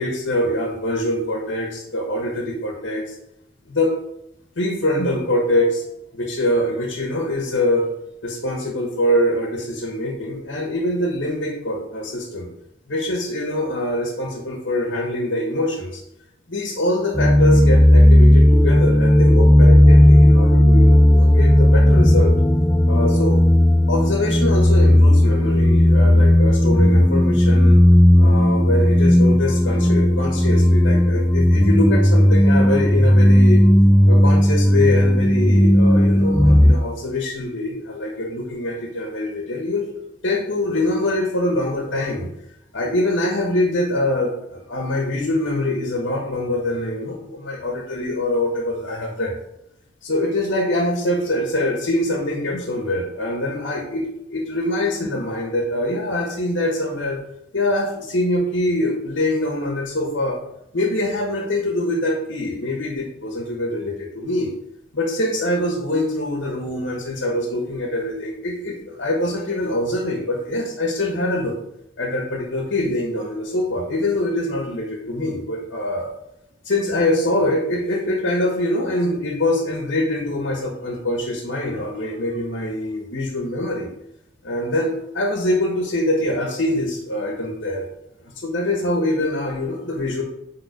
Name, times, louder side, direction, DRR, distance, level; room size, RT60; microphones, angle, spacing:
voice 1, 0.0-3.1 3.7-3.9 4.6-5.8 6.1-7.9 8.2-12.5 12.9-16.0 16.5-22.3 22.9-23.4 23.9-27.8 28.2-33.6 34.0-39.9 40.2-42.3 42.7-49.3 50.0-54.0 54.3-57.2 57.5-60.4 60.7-64.5 64.9-71.5 72.0-76.1 76.6-83.9 84.4-87.8 88.2-90.2, left 1 dB, 80° left, 0 dB, 1.5 m, -24 dB
sound 1, 17.2-36.7, left 1 dB, 10° left, 0.3 m, -14 dB
9.3 x 3.8 x 5.3 m, 0.80 s
head